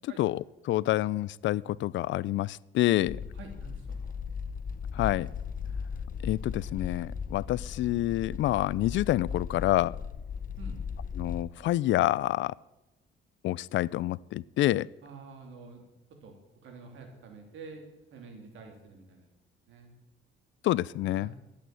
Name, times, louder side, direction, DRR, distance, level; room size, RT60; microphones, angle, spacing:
voice 1, 0.0-3.2 4.9-5.3 6.2-10.0 11.2-12.5 13.4-14.9 20.6-21.3, left 15 dB, 70° left, 23 dB, 0.4 m, -28 dB
sound 1, 3.1-11.4, left 6 dB, 45° left, 0.9 m, -37 dB
voice 2, 3.3-4.2 10.6-10.8 15.0-15.8 16.1-17.9 18.1-19.3 19.7-19.9 21.1-21.4, right 4 dB, 80° right, 3 dB, 3.1 m, -48 dB
12.0 x 8.6 x 7.7 m, 0.99 s
cardioid pair, 90°, 20 cm